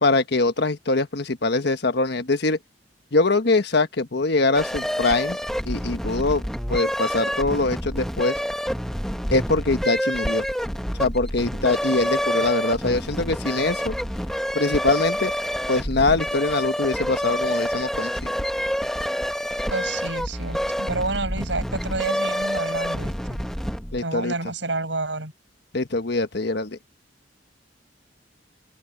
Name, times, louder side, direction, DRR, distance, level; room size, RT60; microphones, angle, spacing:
voice 1, 0.0-2.6 3.1-5.4 5.7-6.4 6.7-8.4 9.3-10.5 11.0-13.9 14.5-15.3 15.7-18.3 23.9-24.3 25.7-26.8, left 3 dB, 65° left, 1.4 m, -23 dB
sound 1, 4.5-24.0, equal, 5° left, 1.8 m, -27 dB
voice 2, 19.7-23.4 24.0-25.3, right 3 dB, 80° right, 7.5 m, -29 dB
open air
head